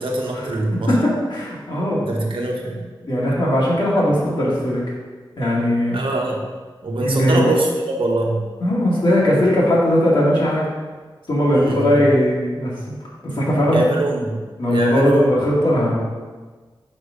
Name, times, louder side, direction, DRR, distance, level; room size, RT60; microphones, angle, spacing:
voice 1, 0.0-0.9 2.1-2.8 5.9-6.4 6.8-8.5 11.5-11.8 13.7-14.3 14.7-15.2, right 2 dB, 70° right, 0 dB, 1.1 m, -23 dB
voice 2, 0.9-2.1 3.0-4.8 5.4-6.0 7.0-7.5 8.6-10.6 11.3-12.7 13.2-13.8 14.6-15.9, equal, 60° left, -6 dB, 2.3 m, -18 dB
5.4 x 5.0 x 5.1 m, 1.4 s
wide cardioid pair, 105°, 9 cm